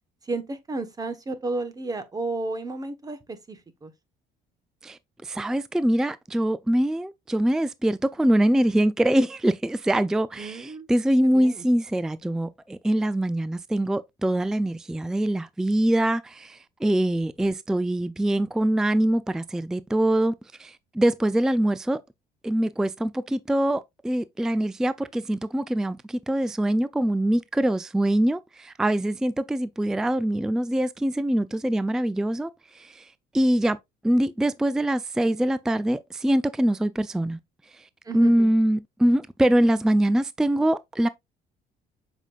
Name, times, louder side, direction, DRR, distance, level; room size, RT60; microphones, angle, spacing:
voice 1, 0.2-3.9 10.4-10.9 11.2-11.6 38.0-38.5, right 3 dB, 20° right, 1.3 m, -33 dB
voice 2, 4.8-20.3 20.6-22.0 22.4-32.5 32.7-33.1 33.3-33.8 34.0-37.4 37.8-37.9 38.1-41.1, right 1 dB, 5° right, 0.3 m, -23 dB
7.3 x 5.3 x 2.5 m
cardioid pair, 110°, 17 cm